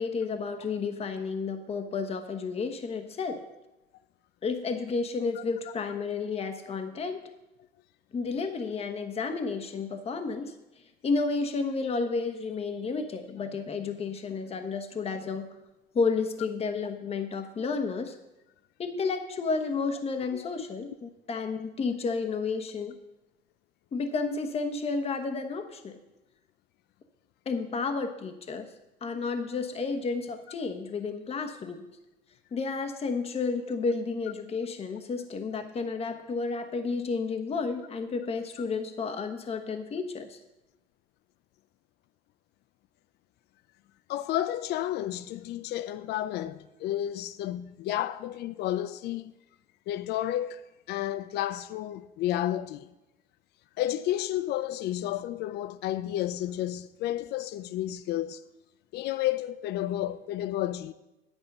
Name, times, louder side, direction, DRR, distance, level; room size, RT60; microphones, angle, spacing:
voice 1, 0.0-3.4 4.4-7.3 8.1-10.5 11.0-15.5 15.9-18.2 18.8-22.9 23.9-26.0 27.5-28.7 29.0-31.8 32.5-40.4, left 4 dB, 35° left, 1.1 m, -31 dB
voice 2, 44.1-49.3 49.9-50.6 50.9-52.9 53.8-58.4 58.9-60.9, left 13 dB, 75° left, 0.5 m, -31 dB
9.6 x 9.0 x 5.4 m
cardioid pair, 110°, 17 cm